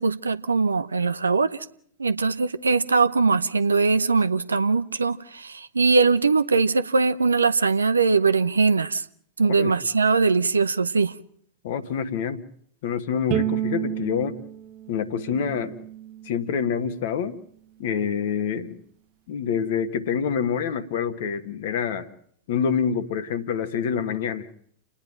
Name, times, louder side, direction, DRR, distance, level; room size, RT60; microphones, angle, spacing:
voice 1, 0.0-1.7 2.0-9.0 9.4-11.1, right 4 dB, 75° right, 11 dB, 0.8 m, -21 dB
voice 2, 11.6-12.4 12.8-14.4 14.9-15.8 16.2-17.3 17.8-18.8 19.3-22.1 22.5-24.5, left 7 dB, 55° left, 10 dB, 1.5 m, -26 dB
Bowed string instrument, 13.3-16.5, right 12 dB, 40° right, 0.8 m, -31 dB
30.0 x 10.0 x 9.0 m, 0.63 s
figure-of-eight pair, 90°, 0 cm